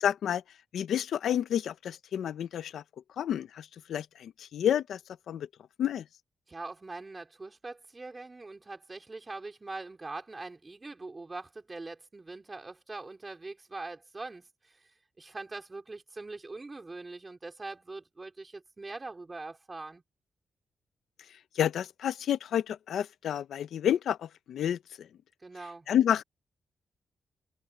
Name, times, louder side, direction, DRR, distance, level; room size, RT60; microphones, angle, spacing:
voice 1, 0.0-0.4 0.7-2.8 3.2-5.0 5.3-5.5 5.8-6.0 21.6-25.1 25.9-26.2, left 10 dB, 80° left, 0.7 m, -29 dB
voice 2, 6.5-14.8 15.2-20.0 25.4-25.9, right 3 dB, 20° right, 4.6 m, -42 dB
wide cardioid pair, 165°, 0 cm